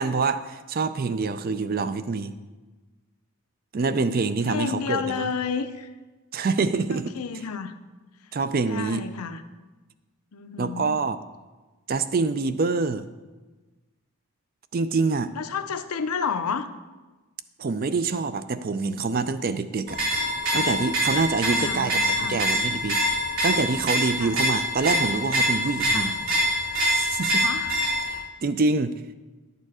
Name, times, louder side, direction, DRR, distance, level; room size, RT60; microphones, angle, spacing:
voice 1, 0.0-2.4 3.7-5.3 6.3-7.1 8.3-9.0 10.6-11.2 11.9-13.0 14.7-15.3 17.6-20.0 20.5-26.1 26.9-27.4 28.1-29.0, right 4 dB, 40° right, 13 dB, 0.4 m, -26 dB
voice 2, 4.4-5.9 6.9-7.7 8.7-9.4 10.3-11.0 15.3-16.7 21.4-22.4 24.2-24.4 25.9-26.2 27.4-27.8, left 6 dB, 85° left, 10 dB, 0.6 m, -31 dB
sound 1, 19.9-28.2, equal, 65° right, 2.7 m, -25 dB
10.5 x 6.7 x 4.9 m, 1.2 s
head